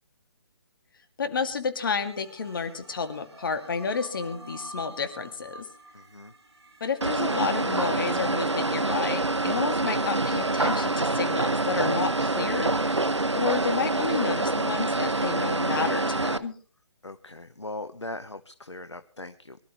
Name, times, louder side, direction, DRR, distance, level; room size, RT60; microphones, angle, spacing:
voice 1, 1.2-5.7 6.8-13.1 13.4-16.6, left 5 dB, 50° left, 8 dB, 2.4 m, -31 dB
sound 1, 1.8-7.9, right 1 dB, 65° right, 3.0 m, -47 dB
voice 2, 5.9-6.3 17.0-19.6, left 2 dB, 85° left, 10 dB, 1.1 m, -40 dB
sound 2, 7.0-16.4, right 2 dB, 85° right, 1.0 m, -26 dB
24.0 x 12.0 x 3.2 m, 0.40 s
figure-of-eight pair, 140°, 14 cm